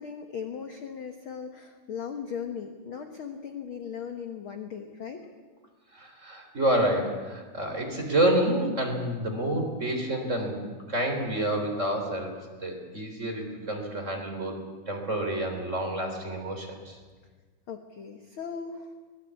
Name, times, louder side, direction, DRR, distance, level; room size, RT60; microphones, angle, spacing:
voice 1, 0.0-5.3 17.7-18.9, left 7 dB, 55° left, 5 dB, 1.6 m, -38 dB
voice 2, 5.9-10.6 10.9-17.0, right 1 dB, 20° right, 3 dB, 3.7 m, -28 dB
24.0 x 18.5 x 8.4 m, 1.4 s
omnidirectional pair, 3.8 m